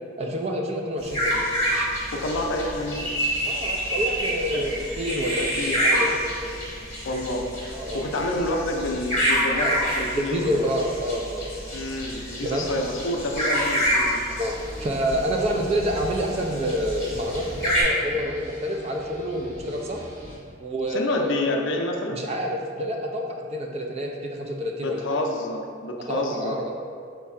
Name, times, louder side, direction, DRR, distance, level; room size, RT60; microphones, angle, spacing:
voice 1, 0.2-1.9 3.5-6.2 7.7-8.0 9.5-9.8 10.1-11.5 12.4-12.7 14.3-20.0 20.6-21.4 22.1-25.1 26.1-26.7, equal, 30° right, 1 dB, 0.3 m, -28 dB
sound 1, 1.0-17.8, equal, 15° left, 1.2 m, -28 dB
voice 2, 2.1-3.1 4.5-4.6 5.4-5.8 7.0-7.5 7.9-10.5 11.7-14.2 15.5-15.6 20.9-22.2 24.8-26.6, left 1 dB, 65° left, 2 dB, 0.4 m, -28 dB
sound 2, 14.6-20.4, equal, 45° right, 1.2 m, -42 dB
4.4 x 2.4 x 4.1 m, 2.3 s
head